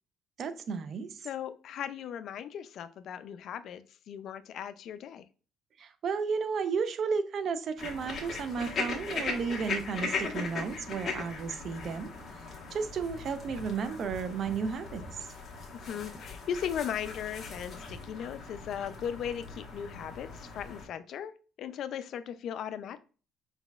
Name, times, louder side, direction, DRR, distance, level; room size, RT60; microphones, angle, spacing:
voice 1, 0.4-1.3 5.8-12.1 12.4-15.3, right 5 dB, 50° right, 11 dB, 0.5 m, -33 dB
voice 2, 1.2-5.2 15.7-23.0, left 9 dB, 60° left, 12 dB, 0.4 m, -37 dB
sound 1, 7.8-20.9, left 4 dB, 40° left, 1.3 m, -39 dB
5.1 x 4.0 x 2.3 m, 0.37 s
cardioid pair, 110°, 0 cm